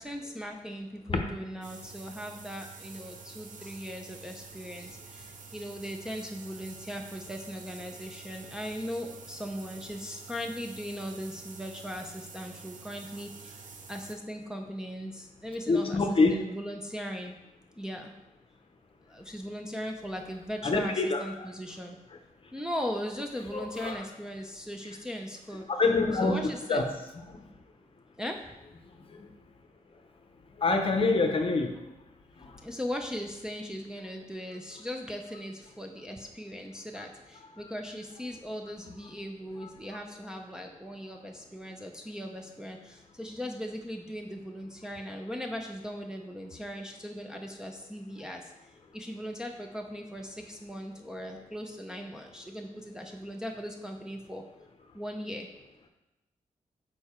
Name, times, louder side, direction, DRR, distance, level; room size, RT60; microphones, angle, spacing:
voice 1, 0.0-13.6 13.9-16.0 16.3-17.4 17.8-18.2 19.0-22.0 22.5-25.7 26.2-26.8 28.2-28.5 32.6-54.4 54.9-55.5, equal, 5° right, 1 dB, 0.5 m, -39 dB
sound 1, 1.6-14.1, right 5 dB, 70° right, 0.7 m, -48 dB
voice 2, 15.7-16.3 20.6-21.5 23.5-24.0 25.7-26.9 27.3-27.4 30.6-31.7 32.4-32.5, left 3 dB, 40° left, 4 dB, 0.7 m, -26 dB
6.7 x 4.5 x 4.3 m, 0.97 s
wide cardioid pair, 150°, 14 cm